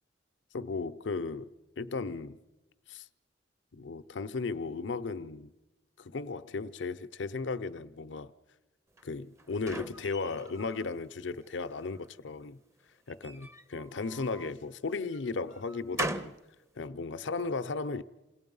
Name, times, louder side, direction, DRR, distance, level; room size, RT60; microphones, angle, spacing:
voice 1, 0.5-1.5 1.8-2.4 2.9-3.1 3.7-5.5 6.0-8.3 9.0-12.6 13.1-16.3 16.8-18.0, left 4 dB, 75° left, 0.6 m, -35 dB
sound 1, 9.0-10.9 11.4-12.1 13.1-14.6 15.1-16.5, right 1 dB, 15° right, 0.6 m, -40 dB
28.5 x 18.0 x 5.4 m
head